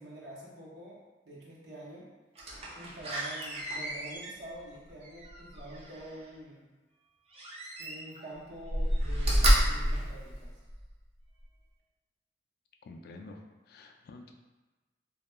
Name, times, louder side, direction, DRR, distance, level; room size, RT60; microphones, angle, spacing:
voice 1, 0.0-2.1 2.8-6.7 7.8-10.5, right 1 dB, 70° right, -5 dB, 0.8 m, -46 dB
Slam, 2.3-6.2 7.3-8.2 8.6-10.9 11.4-11.5, equal, 35° right, 0.5 m, -30 dB
voice 2, 12.8-14.3, left 2 dB, 60° left, 3 dB, 0.3 m, -49 dB
2.2 x 2.2 x 3.0 m, 1.2 s
head